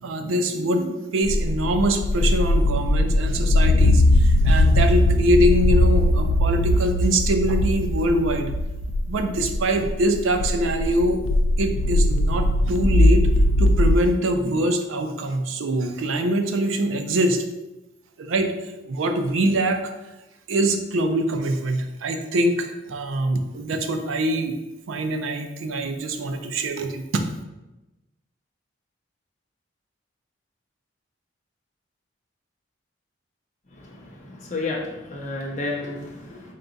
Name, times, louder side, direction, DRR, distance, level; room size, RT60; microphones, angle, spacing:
voice 1, 0.0-8.5 9.1-11.2 11.6-13.3 13.6-17.4 18.2-18.5 18.8-19.8 20.5-24.6 24.9-27.2, right 1 dB, 85° right, 6 dB, 0.4 m, -24 dB
sound 1, 1.2-14.0, left 1 dB, 80° left, 0.3 m, -20 dB
voice 2, 34.2-36.4, left 2 dB, 35° left, -2 dB, 0.6 m, -31 dB
3.7 x 2.3 x 3.9 m, 1.0 s
head